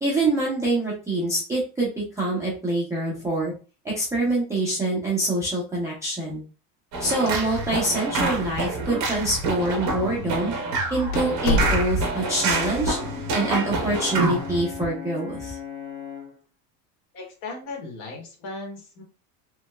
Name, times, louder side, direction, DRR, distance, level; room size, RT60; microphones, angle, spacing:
voice 1, 0.0-3.5 3.8-6.4 7.0-10.5 10.9-13.0 13.3-15.6, right 2 dB, 5° right, -7 dB, 0.4 m, -25 dB
sound 1, 6.9-14.6, right 2 dB, 40° right, 0.9 m, -27 dB
sound 2, 7.2-7.9 8.1-8.2 9.0-9.1 9.9-10.1 10.5-10.6 11.1-12.3, left 1 dB, 65° left, 0.6 m, -27 dB
Brass instrument, 12.1-16.4, left 6 dB, 25° left, 1.0 m, -37 dB
voice 2, 17.1-19.0, left 3 dB, 45° left, 1 dB, 1.3 m, -37 dB
3.0 x 2.7 x 2.2 m, 0.35 s
supercardioid pair, 140°, 48 cm